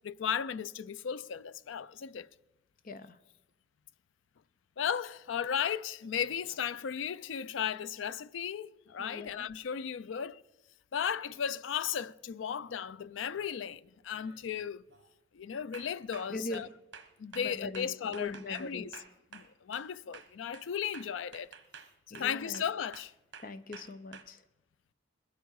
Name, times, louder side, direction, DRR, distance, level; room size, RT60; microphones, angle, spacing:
voice 1, 0.0-2.3 4.8-10.4 10.9-14.8 15.3-16.7 17.2-18.9 19.3-21.5 22.1-23.1, left 8 dB, 85° left, 0.4 m, -35 dB
voice 2, 2.8-3.2 9.0-9.5 16.3-16.7 17.3-18.9 22.1-22.6 23.4-24.4, left 3 dB, 45° left, 0.6 m, -41 dB
sound 1, 6.0-6.7 11.0-11.1 12.6-12.9 13.3-13.6 14.1-14.5 14.9-15.1 15.7-19.9 20.1-24.2, right 6 dB, 70° right, 1.3 m, -52 dB
21.0 x 8.1 x 4.7 m
head